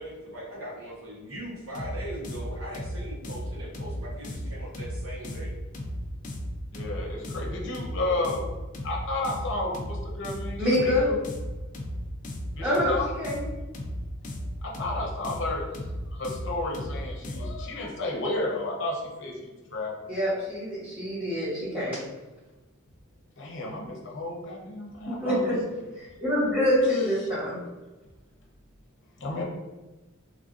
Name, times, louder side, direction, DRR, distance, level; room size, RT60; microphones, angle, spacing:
voice 1, 0.0-5.5, right 1 dB, 80° right, -7 dB, 1.1 m, -40 dB
sound 1, 1.7-17.6, equal, 35° left, 0.3 m, -35 dB
voice 2, 6.7-8.4 8.8-11.2 12.6-13.1 14.6-15.7 16.1-20.1 23.4-25.6 29.2-29.4, left 2 dB, 60° left, -2 dB, 0.7 m, -32 dB
voice 3, 10.6-11.1 12.6-13.4 20.1-22.0 25.1-27.6, left 1 dB, 25° right, -14 dB, 1.2 m, -26 dB
3.3 x 2.5 x 2.5 m, 1.2 s
head